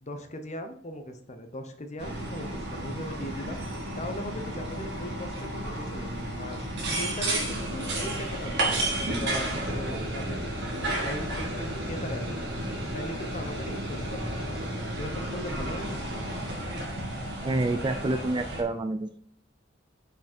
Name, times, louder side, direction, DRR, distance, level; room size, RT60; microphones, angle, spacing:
voice 1, 0.0-3.6 4.0-6.6 7.0-10.5 10.7-12.5 12.9-16.0, equal, 40° left, 6 dB, 1.0 m, -39 dB
sound 1, 2.0-18.6, right 1 dB, 60° right, 2.3 m, -32 dB
voice 2, 17.4-19.1, right 2 dB, 25° right, 9 dB, 0.4 m, -28 dB
6.0 x 5.6 x 4.3 m, 0.63 s
head